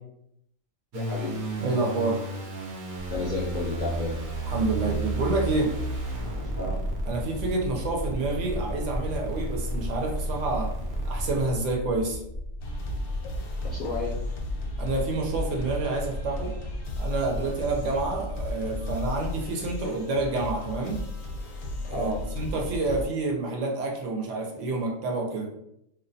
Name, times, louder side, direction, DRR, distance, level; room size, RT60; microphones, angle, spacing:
voice 1, 0.9-1.3 3.1-4.1 6.4-6.8 13.7-14.1 21.9-22.2, left 3 dB, 65° left, -4 dB, 0.5 m, -32 dB
sound 1, 0.9-11.4, right 2 dB, 90° right, 0.4 m, -33 dB
voice 2, 1.6-2.2 4.5-5.7 7.1-10.7 11.0-12.2 14.8-16.5 17.0-21.0 21.9-25.5, right 3 dB, 70° right, 0 dB, 0.8 m, -28 dB
sound 2, 3.0-19.5, left 1 dB, 40° right, 0.9 m, -37 dB
sound 3, 12.6-23.1, left 1 dB, 85° left, 1.0 m, -35 dB
2.5 x 2.0 x 2.6 m, 0.78 s
omnidirectional pair, 1.4 m